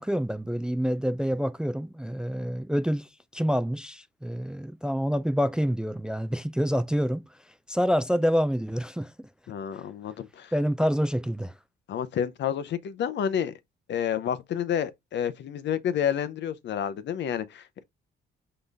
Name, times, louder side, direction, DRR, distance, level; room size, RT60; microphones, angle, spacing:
voice 1, 0.0-7.2 7.7-9.3 10.5-11.5, equal, 5° right, 0.4 m, -27 dB
voice 2, 9.5-10.5 11.9-13.5 13.9-17.8, left 9 dB, 65° left, 0.7 m, -29 dB
3.9 x 3.8 x 3.4 m
cardioid pair, 90°, 20 cm